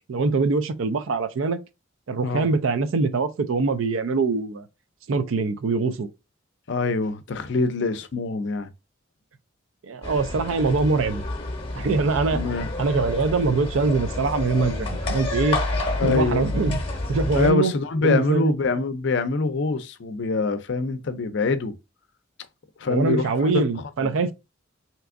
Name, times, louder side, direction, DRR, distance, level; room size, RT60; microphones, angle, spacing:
voice 1, 0.1-1.6 2.1-4.7 5.1-6.1 9.8-11.2 11.8-12.4 12.8-15.6 16.0-16.8 17.1-17.7 18.0-18.5 22.9-24.3, right 4 dB, 80° right, 0.4 m, -23 dB
voice 2, 6.7-8.7 12.3-12.7 15.0-15.2 16.0-16.5 17.3-21.7 22.8-23.6 24.0-24.1, left 3 dB, 60° left, 0.5 m, -24 dB
sound 1, 10.0-17.5, left 2 dB, 30° left, 0.7 m, -29 dB
3.3 x 2.9 x 2.5 m
head